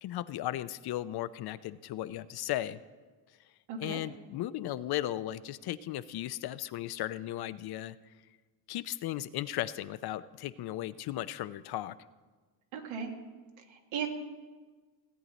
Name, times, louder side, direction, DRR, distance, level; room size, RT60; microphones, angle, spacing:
voice 1, 0.0-2.8 3.8-8.0 8.7-12.0, left 14 dB, 55° left, 15 dB, 0.5 m, -36 dB
voice 2, 3.7-4.0 12.7-13.1 13.7-14.1, right 7 dB, 75° right, 3 dB, 1.8 m, -36 dB
17.0 x 8.8 x 4.1 m, 1.4 s
cardioid pair, 105°, 46 cm